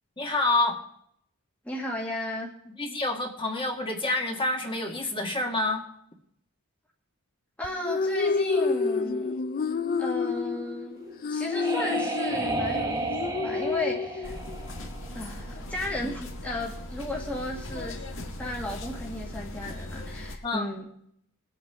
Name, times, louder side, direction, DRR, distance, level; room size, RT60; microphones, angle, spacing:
voice 1, 0.2-0.8 2.7-5.9 20.4-20.7, left 2 dB, 25° left, 1 dB, 1.9 m, -28 dB
voice 2, 1.6-2.5 7.6-9.4 10.0-11.0 11.3-14.3 15.1-20.9, left 1 dB, 5° left, -3 dB, 1.7 m, -35 dB
sound 1, 7.6-14.7, left 4 dB, 40° left, 0.4 m, -29 dB
sound 2, 11.0-15.5, right 3 dB, 15° right, 1.2 m, -32 dB
sound 3, 14.2-20.4, left 1 dB, 60° left, 1.7 m, -38 dB
22.0 x 8.5 x 3.7 m, 0.68 s
head